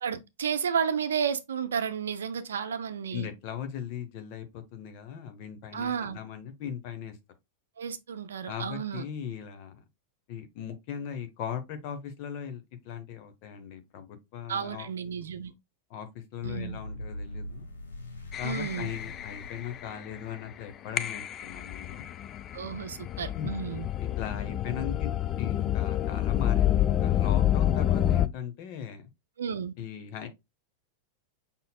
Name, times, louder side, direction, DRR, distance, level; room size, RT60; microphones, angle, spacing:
voice 1, 0.0-3.3 5.7-6.2 7.8-9.0 14.5-15.5 16.4-16.8 18.4-18.9 22.5-23.9 29.4-29.7, right 7 dB, 65° right, 0.6 m, -32 dB
voice 2, 3.1-7.2 8.5-9.8 10.3-14.9 15.9-17.7 18.4-22.1 23.3-23.6 24.0-25.1 25.4-29.1 29.8-30.3, left 8 dB, 45° left, 1.1 m, -38 dB
sound 1, 16.4-20.6, left 1 dB, 70° left, 1.2 m, -42 dB
sound 2, 18.3-20.2 21.0-28.3, left 11 dB, 30° left, 0.4 m, -28 dB
5.6 x 4.1 x 2.2 m
figure-of-eight pair, 90°, 0 cm